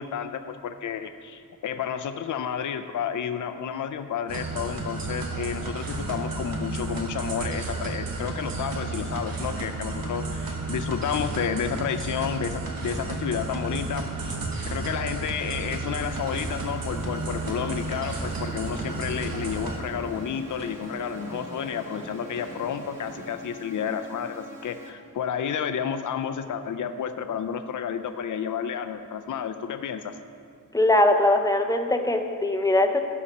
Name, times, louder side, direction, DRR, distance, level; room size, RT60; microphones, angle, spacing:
voice 1, 0.0-14.4 14.7-30.2, left 7 dB, 65° left, 8 dB, 0.4 m, -31 dB
sound 1, 4.3-19.8, right 3 dB, 85° right, 1.0 m, -32 dB
sound 2, 15.9-24.9, left 1 dB, 5° right, 1.2 m, -45 dB
sound 3, 17.3-23.2, right 1 dB, 50° right, 1.2 m, -43 dB
voice 2, 30.7-33.0, left 1 dB, 10° left, 5 dB, 0.5 m, -21 dB
12.5 x 4.3 x 5.3 m, 2.3 s
wide cardioid pair, 115°, 34 cm